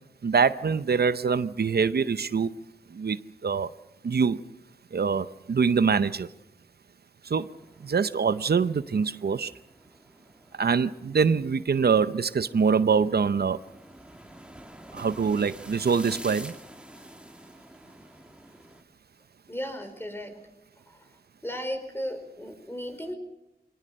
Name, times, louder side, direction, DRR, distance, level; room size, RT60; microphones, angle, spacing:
voice 1, 0.2-2.5 2.9-3.7 4.0-4.4 4.9-6.3 7.2-9.5 10.5-13.6 14.9-16.5, right 5 dB, 85° right, 14 dB, 0.7 m, -24 dB
sound 1, 7.5-18.8, equal, 5° right, 2.3 m, -48 dB
voice 2, 19.5-20.4 20.9-21.1 21.4-23.1, equal, 15° left, 6 dB, 4.7 m, -35 dB
24.0 x 18.5 x 6.5 m, 0.89 s
wide cardioid pair, 60°, 16 cm